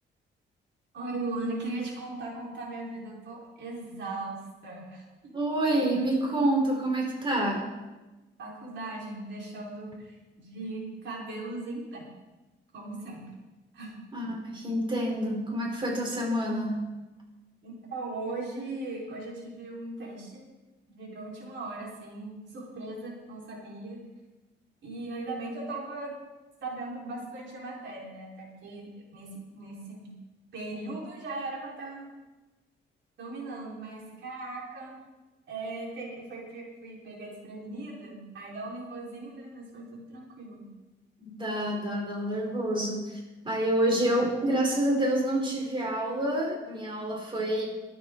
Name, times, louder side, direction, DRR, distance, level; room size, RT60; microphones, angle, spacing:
voice 1, 0.9-5.0 8.4-12.1 12.7-13.2 13.7-13.9 17.6-20.4 20.9-24.0 24.8-26.1 26.6-30.1 30.5-32.1 33.2-35.0 35.5-40.7, right 2 dB, 70° right, -3 dB, 4.5 m, -38 dB
voice 2, 5.3-7.7 14.1-16.9 41.2-47.7, right 1 dB, 25° right, -1 dB, 3.9 m, -28 dB
23.0 x 9.1 x 3.9 m, 1.1 s
cardioid pair, 115°, 20 cm